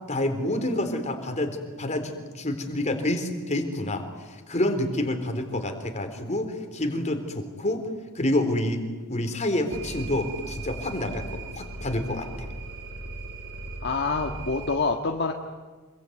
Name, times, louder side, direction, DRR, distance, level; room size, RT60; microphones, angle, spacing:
voice 1, 0.1-7.9 8.2-8.8 9.1-12.5, left 1 dB, 30° left, 6 dB, 3.7 m, -28 dB
sound 1, 9.7-14.8, right 2 dB, 60° right, 3.9 m, -38 dB
voice 2, 13.8-15.3, left 4 dB, 50° left, 3 dB, 1.7 m, -26 dB
27.0 x 23.5 x 9.3 m, 1.4 s
head